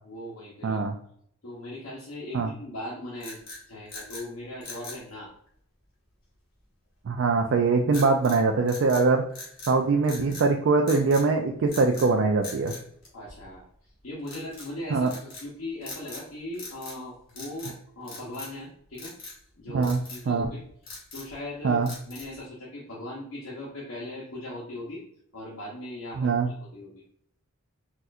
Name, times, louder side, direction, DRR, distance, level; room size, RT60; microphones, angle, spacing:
voice 1, 0.0-0.9 1.4-3.4 3.7-5.3 13.1-13.6 14.0-19.1 19.5-25.0 25.3-27.0, left 1 dB, 75° left, -5 dB, 0.8 m, -39 dB
voice 2, 0.6-0.9 2.3-2.5 7.1-9.2 9.7-12.7 14.9-15.1 19.7-20.0 20.3-20.5 21.6-21.9 26.2-26.5, right 4 dB, 60° right, 3 dB, 0.3 m, -22 dB
sound 1, 3.2-4.3 4.6-5.0 7.9-8.4 8.7-9.8 10.0-10.5 10.9-11.3 11.7-12.1 12.4-13.6 14.2-14.7 15.1-15.5 15.8-16.3 16.5-17.0 17.3-17.8 18.1-18.6 19.0-19.4 19.8-20.2 20.7-21.4 21.9-22.4, left 2 dB, 45° left, 1.3 m, -42 dB
4.2 x 2.4 x 2.3 m, 0.66 s
head